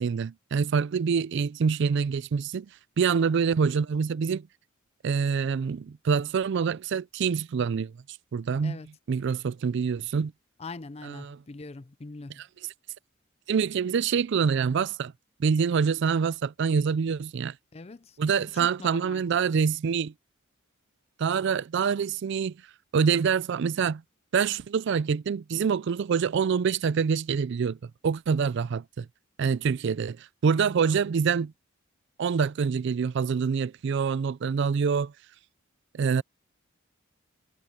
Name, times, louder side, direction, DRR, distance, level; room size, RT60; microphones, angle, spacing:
voice 1, 0.0-2.7 3.0-4.5 5.0-7.9 8.3-8.8 9.1-10.3 11.0-11.4 13.5-15.1 15.4-17.5 18.2-20.1 21.2-22.6 22.9-24.0 24.3-27.8 28.0-29.1 29.4-31.5 32.2-35.1 35.9-36.2, right 6 dB, 60° right, 0.4 m, -26 dB
voice 2, 10.6-12.4 17.7-19.2, left 3 dB, 30° left, 0.5 m, -42 dB
head